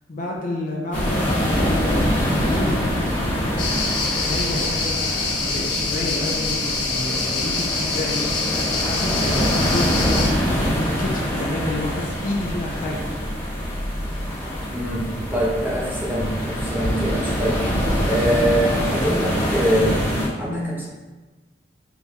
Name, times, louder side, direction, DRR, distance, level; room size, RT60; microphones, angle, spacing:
voice 1, 0.1-3.5 3.8-9.4 9.7-13.1, left 2 dB, 45° left, -1 dB, 0.5 m, -30 dB
sound 1, 0.9-20.3, equal, 10° left, 1.2 m, -24 dB
sound 2, 3.6-10.3, left 4 dB, 70° left, 1.0 m, -25 dB
voice 2, 14.7-17.6 18.0-20.0 20.4-20.9, right 1 dB, 10° right, -6 dB, 0.9 m, -23 dB
5.4 x 2.7 x 2.3 m, 1.2 s
head